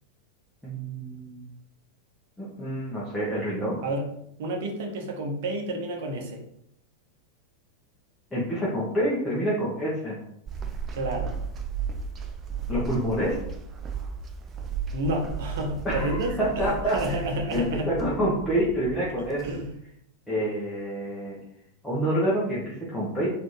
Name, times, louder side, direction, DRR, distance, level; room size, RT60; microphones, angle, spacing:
voice 1, 0.6-1.4 2.4-3.8 8.3-10.2 12.7-13.4 15.8-17.2 17.5-19.4 20.3-21.4 21.8-23.3, equal, 5° left, -9 dB, 1.1 m, -27 dB
voice 2, 4.4-6.4 10.9-11.3 14.9-17.9 19.4-19.7, right 1 dB, 55° right, 1 dB, 0.9 m, -30 dB
sound 1, 10.5-19.7, right 6 dB, 25° right, 0.5 m, -35 dB
4.2 x 2.9 x 3.1 m, 0.75 s
figure-of-eight pair, 90°, 0 cm